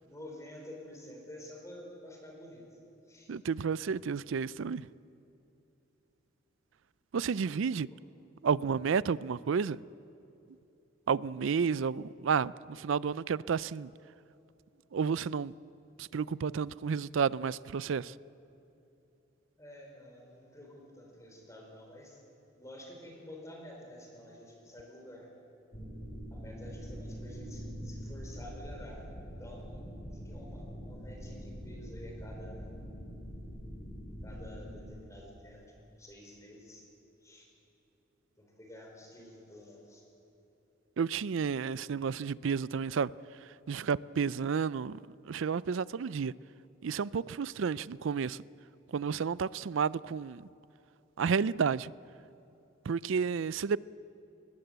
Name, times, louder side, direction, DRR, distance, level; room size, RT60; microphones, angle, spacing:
voice 1, 0.0-2.8 3.1-3.3 7.9-8.0 19.6-22.2 22.5-25.3 26.3-29.0 29.4-32.7 34.2-36.9 37.2-37.5 38.4-40.0, left 1 dB, 15° left, 4.6 m, -50 dB
voice 2, 3.3-4.9 7.1-7.9 8.4-9.8 11.1-13.9 14.9-15.5 16.0-18.1 41.0-43.1 43.4-46.3 46.8-48.4 48.9-50.5 51.2-51.9 52.8-53.8, right 6 dB, 70° right, 0.4 m, -31 dB
sound 1, 25.7-34.8, equal, 40° left, 3.8 m, -44 dB
21.5 x 20.5 x 8.1 m
head